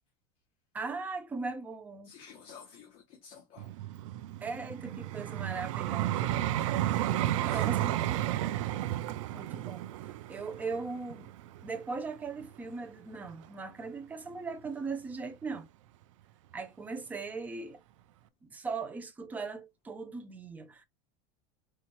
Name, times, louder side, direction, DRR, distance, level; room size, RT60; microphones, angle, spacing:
voice 1, 0.7-2.1 4.4-6.3 7.4-8.0 9.3-9.8 10.3-11.3 11.6-15.7 16.5-17.8 18.4-20.8, right 4 dB, 10° right, 0.4 m, -39 dB
voice 2, 2.0-3.7 7.2-7.7 8.0-8.1, left 7 dB, 35° left, 1.0 m, -51 dB
Vehicle, 3.6-12.7 13.3-13.5, right 13 dB, 85° right, 0.5 m, -33 dB
4.3 x 2.3 x 2.9 m
supercardioid pair, 165°, 16 cm